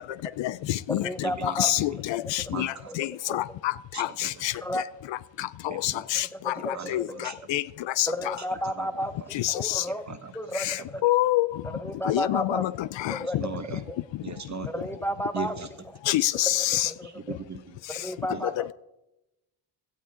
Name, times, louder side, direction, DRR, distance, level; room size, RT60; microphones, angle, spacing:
voice 1, 0.4-1.1 1.4-4.8 5.4-7.6 8.0-8.4 9.3-9.8 10.5-11.5 12.0-13.4 16.1-16.9 18.6-18.7, left 15 dB, 65° left, 0.5 m, -27 dB
voice 2, 1.0-1.7 2.6-3.4 4.6-4.8 6.4-7.1 7.4-7.5 8.1-10.1 10.3-11.0 11.7-12.6 13.0-13.4 13.9-14.0 14.7-15.8 16.0-16.1 16.5-17.4 17.9-18.7, equal, 5° left, 0.9 m, -33 dB
voice 3, 3.9-4.3 5.7-6.0 6.7-7.0 7.2-7.3 8.6-8.9 10.1-10.2 13.4-13.8 14.2-14.7 15.3-15.7 17.1-17.8 18.3-18.4, right 6 dB, 35° right, 1.5 m, -37 dB
17.0 x 12.5 x 3.7 m
cardioid pair, 85°, 48 cm